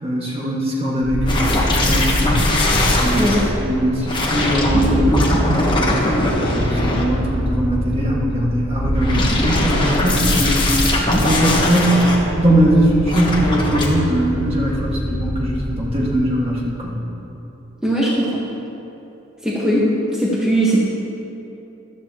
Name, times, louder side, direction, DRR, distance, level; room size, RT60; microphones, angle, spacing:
voice 1, 0.0-2.5 3.0-12.1 12.4-17.0, right 1 dB, 30° right, -4 dB, 1.8 m, -21 dB
sound 1, 1.0-16.2, equal, 40° left, 1.9 m, -26 dB
sound 2, 1.3-3.4 4.1-7.5 8.8-12.2 13.1-13.9, left 1 dB, 25° left, 1.3 m, -20 dB
voice 2, 17.8-18.3 19.4-19.8 20.2-20.8, right 1 dB, 5° right, -7 dB, 1.3 m, -18 dB
14.5 x 12.0 x 3.0 m, 3.0 s
head